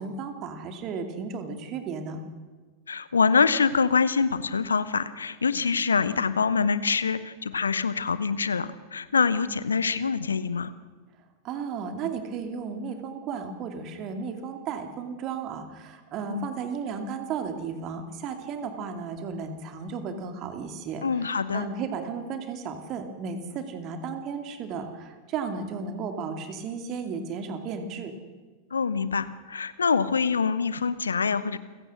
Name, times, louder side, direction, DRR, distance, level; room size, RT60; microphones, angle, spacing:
voice 1, 0.0-2.2 11.4-28.1, right 5 dB, 35° right, 7 dB, 2.5 m, -34 dB
voice 2, 2.9-10.7 16.2-16.5 21.0-21.7 28.7-31.6, left 5 dB, 75° left, 16 dB, 0.8 m, -25 dB
29.0 x 16.5 x 6.4 m, 1.4 s
figure-of-eight pair, 90°, 0 cm